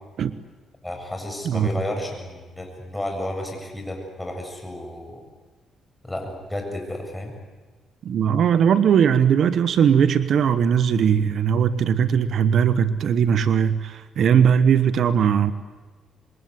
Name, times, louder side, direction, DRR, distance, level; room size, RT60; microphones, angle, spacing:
voice 1, 0.8-5.2 6.0-7.3, left 1 dB, 10° left, 2 dB, 7.8 m, -32 dB
voice 2, 8.0-15.5, right 8 dB, 65° right, 12 dB, 1.2 m, -19 dB
27.0 x 22.5 x 9.6 m, 1.3 s
cardioid pair, 90°, 0 cm